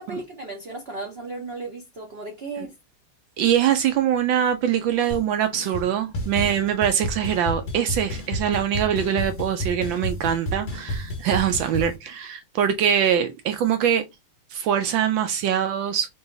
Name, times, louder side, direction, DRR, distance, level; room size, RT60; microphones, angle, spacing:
voice 1, 0.0-2.7, right 2 dB, 55° right, 0.6 m, -35 dB
voice 2, 3.4-14.0 14.5-16.1, right 9 dB, 75° right, 1.1 m, -23 dB
sound 1, 5.1-5.2 5.5-5.9 6.1-12.0, equal, 30° left, 1.0 m, -31 dB
3.9 x 2.8 x 3.8 m
omnidirectional pair, 2.4 m